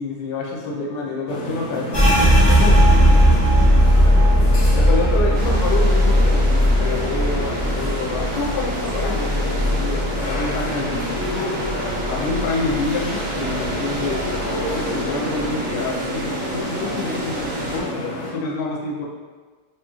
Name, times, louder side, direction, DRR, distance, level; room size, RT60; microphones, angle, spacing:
voice 1, 0.0-3.2 4.7-11.5 12.0-14.2 14.6-19.1, left 3 dB, 85° left, -2 dB, 1.3 m, -28 dB
sound 1, 1.3-18.3, left 1 dB, 60° left, 1.1 m, -29 dB
sound 2, 1.9-11.3 11.6-12.9 13.2-13.7 14.1-14.7, equal, 40° left, 0.3 m, -17 dB
sound 3, 5.3-17.8, right 2 dB, 70° right, 1.0 m, -31 dB
3.0 x 2.9 x 2.3 m, 1.4 s
omnidirectional pair, 1.9 m